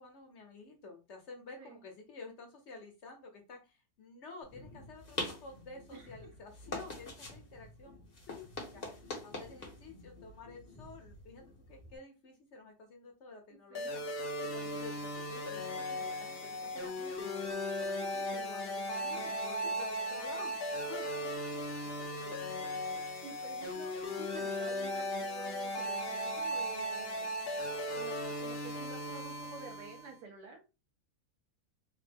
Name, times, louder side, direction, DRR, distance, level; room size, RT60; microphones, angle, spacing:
voice 1, 0.0-8.0 8.3-8.9 9.2-17.4 17.8-20.6 20.9-23.1, left 3 dB, 55° left, 2 dB, 0.9 m, -51 dB
sound 1, 4.4-12.0, left 2 dB, 35° left, 0.8 m, -45 dB
voice 2, 13.5-14.1 19.1-19.3 20.3-20.5 23.2-27.5 27.9-30.6, right 4 dB, 90° right, 2 dB, 1.4 m, -50 dB
sound 2, 13.8-30.2, equal, 85° left, 0.5 m, -37 dB
3.4 x 2.1 x 3.3 m, 0.29 s
omnidirectional pair, 1.6 m